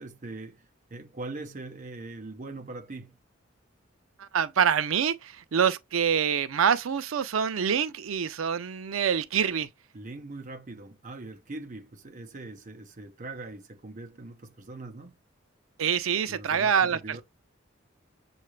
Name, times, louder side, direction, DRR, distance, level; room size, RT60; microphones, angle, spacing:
voice 1, 0.0-3.2 9.9-15.2 16.3-17.2, right 2 dB, 40° right, 0.7 m, -41 dB
voice 2, 4.2-9.7 15.8-17.2, right 7 dB, 80° right, 0.5 m, -26 dB
6.5 x 2.4 x 3.1 m
head